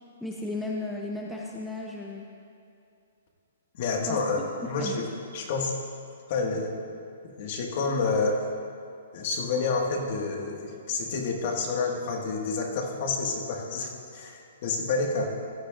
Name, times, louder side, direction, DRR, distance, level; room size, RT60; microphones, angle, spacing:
voice 1, 0.2-2.3 4.1-4.2 4.6-5.0, left 2 dB, 5° left, -2 dB, 0.8 m, -34 dB
voice 2, 3.8-5.1 5.3-5.7 6.3-6.7 7.2-8.4 9.1-15.3, left 4 dB, 50° left, 1 dB, 1.8 m, -29 dB
16.5 x 12.0 x 2.6 m, 2.5 s
hypercardioid pair, 150°, 0 cm